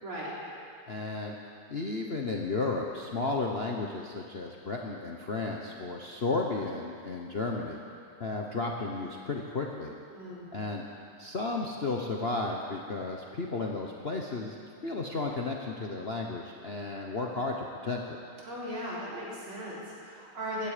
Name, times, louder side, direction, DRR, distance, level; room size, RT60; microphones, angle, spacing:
voice 1, 0.0-0.3 10.1-10.5 18.4-20.7, equal, 80° right, -6 dB, 4.5 m, -38 dB
voice 2, 0.9-1.3 1.7-7.8 8.2-9.9 10.5-10.8 11.2-14.6 14.8-18.0, left 3 dB, 45° left, 0 dB, 0.8 m, -33 dB
15.5 x 15.0 x 5.0 m, 2.3 s
omnidirectional pair, 2.3 m